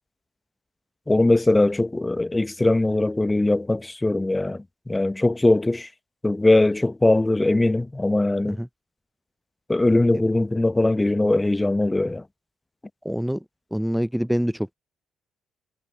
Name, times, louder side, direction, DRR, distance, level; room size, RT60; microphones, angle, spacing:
voice 1, 1.1-5.9 6.2-8.6 9.7-12.2, left 2 dB, 15° left, 1.0 m, -21 dB
voice 2, 13.0-13.4 13.7-14.7, equal, ahead, 0.6 m, -25 dB
figure-of-eight pair, 40°, 0 cm